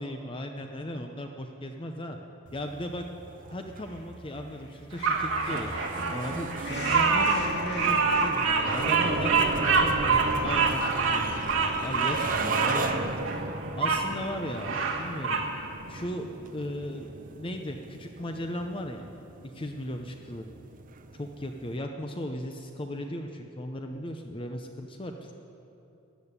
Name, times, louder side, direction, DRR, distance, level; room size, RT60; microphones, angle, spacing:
voice 1, 0.0-2.2 2.5-3.1 3.5-11.3 11.8-15.4 15.9-19.1 19.5-20.5 21.1-25.3, left 1 dB, 25° left, 4 dB, 0.7 m, -37 dB
sound 1, 2.5-21.8, right 3 dB, 40° right, 0.8 m, -36 dB
sound 2, 3.8-4.0 4.5-8.7 9.0-9.1 9.3-12.1, left 1 dB, 50° left, 2.7 m, -42 dB
Bird vocalization bird call bird song, 5.0-14.0 14.5-15.5, right 4 dB, 70° right, 1.6 m, -26 dB
13.5 x 9.2 x 9.8 m, 2.8 s
head